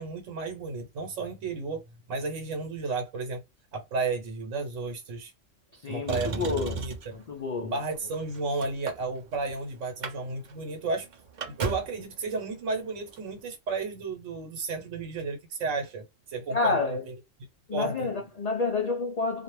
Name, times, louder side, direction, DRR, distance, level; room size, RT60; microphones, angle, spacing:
voice 1, 0.0-1.8 2.1-3.4 3.7-5.3 5.9-7.0 7.6-17.1 17.7-18.1, right 3 dB, 80° right, 1.1 m, -33 dB
voice 2, 5.7-6.8 7.1-7.7 16.5-17.0 17.7-19.4, left 3 dB, 90° left, 0.3 m, -29 dB
Motor vehicle (road), 6.1-7.2 8.0-9.5 9.8-10.2 10.4-10.5 10.9-12.0 13.1-13.2, right 4 dB, 55° right, 0.5 m, -34 dB
2.4 x 2.0 x 3.1 m
omnidirectional pair, 1.3 m